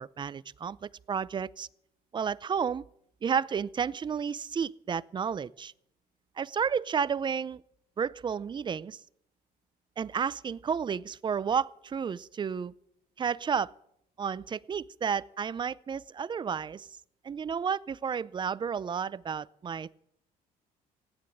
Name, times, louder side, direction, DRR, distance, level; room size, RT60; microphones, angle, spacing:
voice 1, 0.0-1.7 2.1-2.8 3.2-5.7 6.4-7.6 8.0-9.0 10.0-12.7 13.2-13.7 14.2-16.9 17.2-20.0, right 7 dB, 25° right, 0.5 m, -31 dB
16.0 x 9.8 x 8.7 m
cardioid pair, 110°, 17 cm